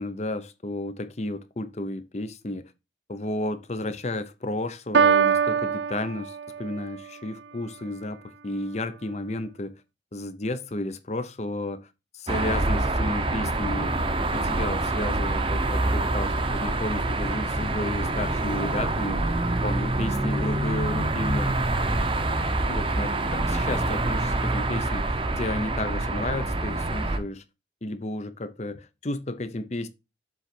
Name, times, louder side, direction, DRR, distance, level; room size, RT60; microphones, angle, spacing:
voice 1, 0.0-2.7 3.1-9.8 10.1-11.9 12.1-19.2 19.6-21.5 22.7-27.4 27.8-29.9, left 1 dB, 40° left, 0.7 m, -32 dB
Piano, 4.9-6.9, right 6 dB, 75° right, 0.5 m, -23 dB
sound 1, 12.3-27.2, right 2 dB, 30° right, 0.7 m, -26 dB
7.4 x 3.9 x 4.4 m
head